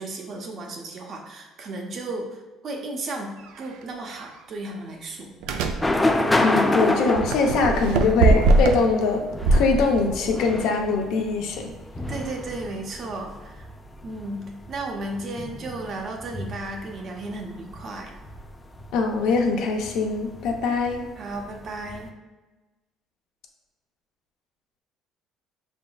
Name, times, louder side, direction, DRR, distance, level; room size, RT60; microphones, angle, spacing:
voice 1, 0.0-5.4 12.1-13.7 14.0-18.1 21.2-22.1, right 2 dB, 45° right, 2 dB, 0.7 m, -34 dB
sound 1, 3.4-3.6 4.1-4.3 5.4-5.8 7.1-8.9 9.4-10.4, right 3 dB, 90° right, 0.4 m, -21 dB
sound 2, 5.8-22.1, left 1 dB, 10° left, 0.4 m, -30 dB
voice 2, 6.4-9.2 9.5-11.7 18.9-21.0, left 4 dB, 75° left, 2 dB, 0.7 m, -22 dB
5.2 x 3.6 x 2.3 m, 1.2 s
cardioid pair, 130°, 0 cm